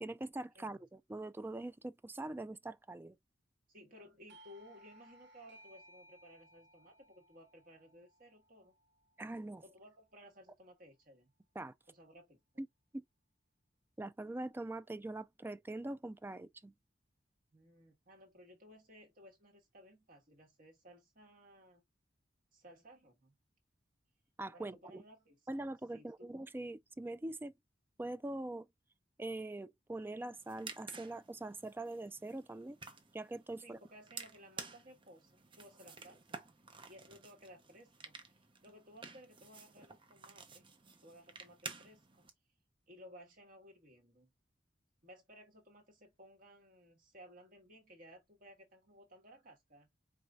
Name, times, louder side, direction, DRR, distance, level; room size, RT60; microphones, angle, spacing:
voice 1, 0.0-3.2 9.2-9.6 11.6-11.7 12.6-12.7 12.9-13.0 14.0-16.7 24.4-25.0 25.5-27.5 28.0-28.7 29.2-32.8 33.1-33.8, right 2 dB, 10° right, 0.3 m, -43 dB
voice 2, 3.7-8.8 9.6-11.3 11.9-12.4 17.5-21.8 22.5-23.3 24.5-25.4 25.9-26.3 33.6-36.4 36.9-40.7 41.0-42.3 42.9-44.3 45.0-49.9, equal, 50° right, 2.0 m, -58 dB
Doorbell, 4.3-9.6, right 1 dB, 65° right, 1.5 m, -62 dB
sound 1, 30.3-42.3, right 5 dB, 30° right, 0.9 m, -52 dB
5.0 x 3.5 x 2.5 m
head